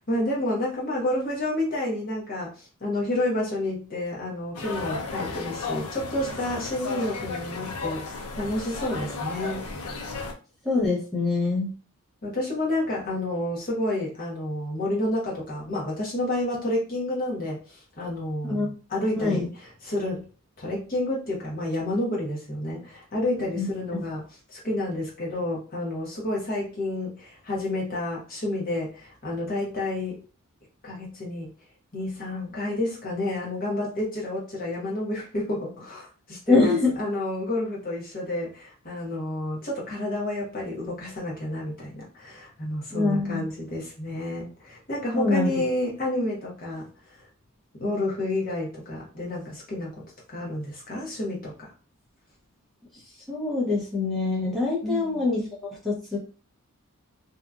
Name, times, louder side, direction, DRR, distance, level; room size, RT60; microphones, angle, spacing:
voice 1, 0.1-9.6 12.2-17.6 18.0-20.2 20.6-24.2 24.5-30.2 30.8-31.5 31.9-46.9 47.8-49.9 50.3-51.7 54.8-55.2, left 1 dB, 40° left, -4 dB, 1.0 m, -30 dB
sound 1, 4.5-10.3, left 3 dB, 75° left, 0.5 m, -34 dB
voice 2, 10.6-11.7 18.4-18.7 19.2-19.5 23.5-23.7 23.9-24.0 36.5-36.9 42.9-43.5 45.1-45.6 53.3-55.5 55.8-56.2, left 3 dB, ahead, -7 dB, 0.7 m, -24 dB
2.8 x 2.4 x 2.4 m, 0.35 s
head